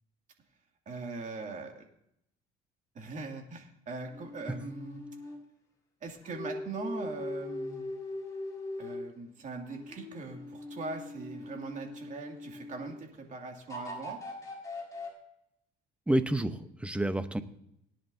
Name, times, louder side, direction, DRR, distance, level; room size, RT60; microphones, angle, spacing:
voice 1, 0.9-1.8 2.9-5.0 6.0-7.9 8.8-14.2, right 3 dB, 45° right, 2 dB, 2.4 m, -41 dB
sound 1, 4.1-5.4 6.2-9.1 9.7-13.0 13.7-15.1, left 2 dB, 20° left, 4.3 m, -41 dB
voice 2, 16.1-17.4, right 1 dB, 5° right, 10 dB, 0.8 m, -29 dB
18.5 x 10.5 x 2.7 m, 0.76 s
cardioid pair, 110°, 17 cm